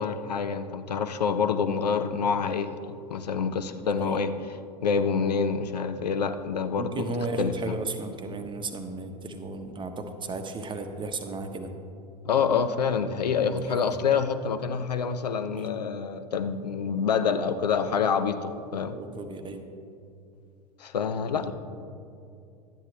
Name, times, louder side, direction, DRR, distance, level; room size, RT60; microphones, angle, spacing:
voice 1, 0.0-4.3 4.8-7.0 7.4-7.8 12.2-19.0 20.8-21.5, left 6 dB, 85° left, 11 dB, 0.5 m, -27 dB
voice 2, 3.8-4.2 6.8-11.7 13.3-14.0 15.5-15.7 18.7-19.6 21.3-21.5, right 2 dB, 25° right, 6 dB, 1.0 m, -35 dB
12.0 x 9.7 x 3.2 m, 2.5 s
hypercardioid pair, 80°, 20 cm